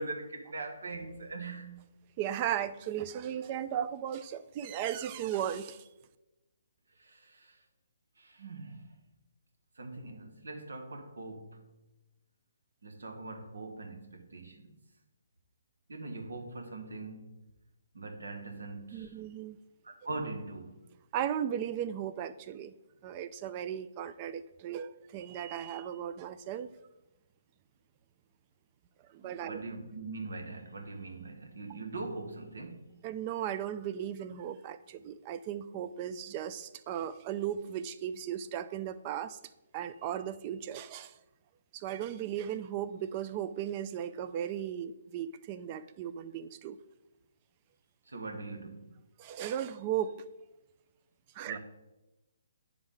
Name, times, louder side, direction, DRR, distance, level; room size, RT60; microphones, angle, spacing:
voice 1, 0.0-1.8 7.0-7.6 8.2-9.0 9.8-11.7 12.8-14.7 15.9-17.4 17.9-19.2 19.8-20.8 29.2-33.0 48.1-48.9 51.5-51.6, right 3 dB, 80° right, 1.1 m, -42 dB
voice 2, 2.2-5.8 18.9-19.6 21.1-22.7 23.0-26.7 29.1-29.6 33.0-39.4 39.7-41.1 41.7-46.8 49.2-50.2 51.3-51.6, right 10 dB, 30° right, 0.3 m, -36 dB
9.8 x 3.5 x 3.7 m
hypercardioid pair, 145°, 0 cm